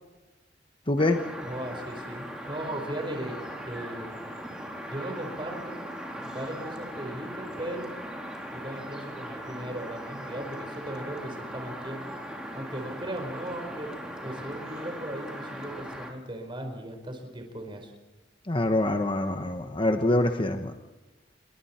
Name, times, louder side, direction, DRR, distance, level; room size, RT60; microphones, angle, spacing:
voice 1, 0.9-1.2 18.5-20.7, left 1 dB, 30° left, 5 dB, 1.1 m, -25 dB
sound 1, 1.0-16.1, equal, 5° right, 3.7 m, -39 dB
voice 2, 1.4-3.4 3.7-4.2 4.9-5.8 6.2-8.0 8.5-12.0 12.5-13.9 14.2-17.9, right 1 dB, 30° right, 4 dB, 4.4 m, -37 dB
28.0 x 23.0 x 4.4 m, 1.1 s
head